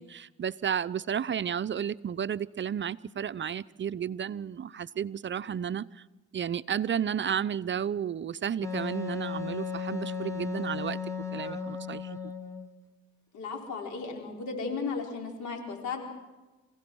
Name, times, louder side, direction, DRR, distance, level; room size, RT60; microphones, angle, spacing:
voice 1, 0.0-6.0 6.3-11.0 11.3-12.1, right 8 dB, 40° right, 15 dB, 0.6 m, -32 dB
Wind instrument woodwind instrument, 8.6-12.7, left 5 dB, 10° left, 2.4 m, -35 dB
voice 2, 13.3-16.0, left 4 dB, 75° left, 2 dB, 4.8 m, -35 dB
27.0 x 16.5 x 6.3 m, 1.1 s
supercardioid pair, 70°, 30 cm